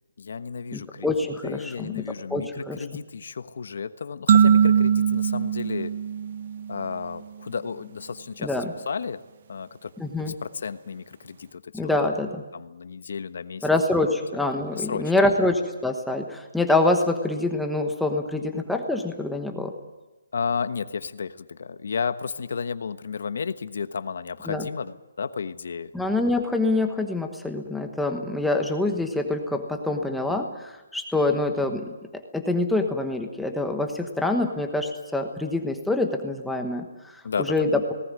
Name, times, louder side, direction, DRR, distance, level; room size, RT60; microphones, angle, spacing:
voice 1, 0.2-1.1 1.4-5.9 6.7-9.2 9.5-9.9 10.2-11.9 12.3-13.7 14.1-14.2 14.7-15.1 20.3-25.9 29.9-30.0 31.2-31.4 37.2-37.7, left 5 dB, 65° left, 12 dB, 1.2 m, -33 dB
voice 2, 0.7-2.0 2.3-2.8 8.4-8.7 10.0-10.3 11.7-12.4 13.6-19.7 24.5-24.7 25.9-37.2 37.5-37.9, left 2 dB, ahead, 3 dB, 1.1 m, -25 dB
sound 1, 4.3-6.9, right 7 dB, 40° right, 0.9 m, -20 dB
18.5 x 18.0 x 9.7 m, 1.1 s
hypercardioid pair, 170°, 0 cm